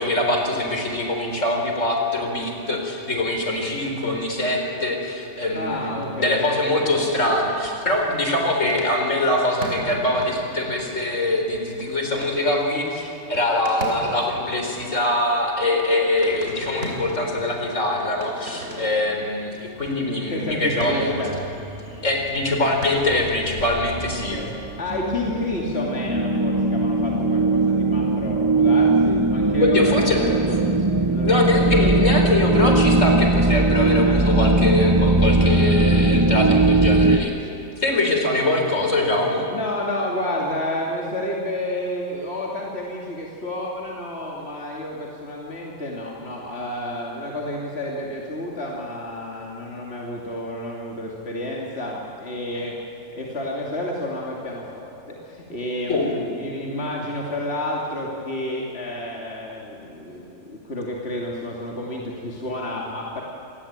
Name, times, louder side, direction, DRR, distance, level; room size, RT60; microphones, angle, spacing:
voice 1, 0.0-21.2 22.0-24.4 29.6-30.2 31.2-37.3 37.8-39.5 55.9-56.1, left 1 dB, 75° left, 2 dB, 4.6 m, -23 dB
voice 2, 5.5-7.0 20.3-21.3 24.1-30.6 31.1-31.5 31.8-32.3 33.7-34.5 35.4-36.1 39.5-52.7 53.1-63.2, left 1 dB, 55° left, -2 dB, 3.1 m, -30 dB
sound 1, 7.0-22.9, equal, 65° right, 5.1 m, -39 dB
sound 2, 20.8-26.0, equal, 80° right, 4.8 m, -39 dB
sound 3, 24.0-37.2, right 2 dB, 20° right, 0.8 m, -19 dB
27.0 x 20.5 x 8.9 m, 3.0 s
omnidirectional pair, 1.3 m